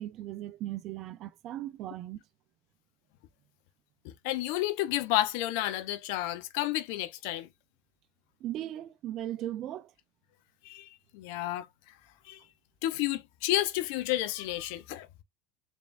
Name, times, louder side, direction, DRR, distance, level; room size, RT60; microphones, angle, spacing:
voice 1, 0.0-2.2 8.4-9.9, right 13 dB, 50° right, 0.4 m, -37 dB
voice 2, 4.0-7.5 10.6-10.9 11.1-11.7 12.3-12.4 12.8-15.1, left 15 dB, 70° left, 0.8 m, -31 dB
4.3 x 3.4 x 2.5 m
hypercardioid pair, 85°, 0 cm